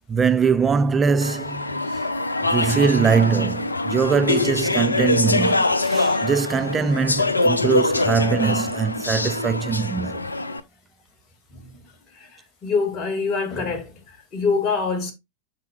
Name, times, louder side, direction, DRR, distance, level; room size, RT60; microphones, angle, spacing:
voice 1, 0.1-2.0 2.5-10.3, right 6 dB, 20° right, 0.5 m, -22 dB
Speech / Chatter, 1.2-10.6, left 2 dB, 80° left, 0.5 m, -23 dB
voice 2, 12.6-15.1, left 4 dB, 30° left, 2.1 m, -25 dB
12.5 x 4.3 x 2.3 m
figure-of-eight pair, 90°, 0 cm